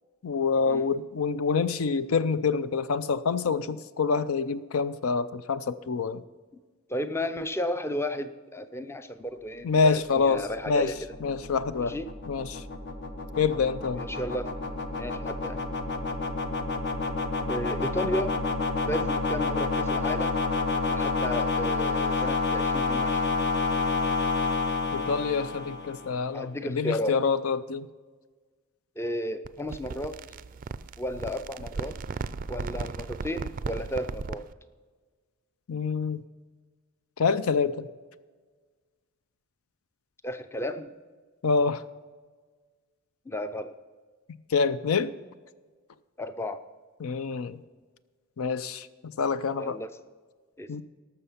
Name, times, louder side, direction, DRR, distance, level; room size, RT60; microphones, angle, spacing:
voice 1, 0.2-6.2 9.6-10.9 11.2-11.9 12.3-12.6 13.4-14.0 24.9-27.9 35.7-36.2 37.2-37.9 41.4-41.8 44.5-45.1 47.0-47.6 48.4-49.8 50.7-50.8, left 5 dB, 75° left, 15 dB, 0.5 m, -26 dB
voice 2, 6.9-10.9 11.8-12.1 14.0-14.5 15.0-15.6 17.5-18.3 18.9-20.4 20.9-23.2 26.3-27.2 29.0-30.2 31.0-32.0 32.5-34.4 40.2-40.9 43.3-43.7 46.2-46.6 49.6-49.9 50.6-50.7, left 1 dB, 10° left, 11 dB, 0.5 m, -33 dB
sound 1, 10.0-26.2, left 3 dB, 55° left, 1.1 m, -29 dB
sound 2, 29.4-34.5, right 4 dB, 40° right, 0.4 m, -36 dB
18.0 x 6.8 x 5.7 m, 1.4 s
head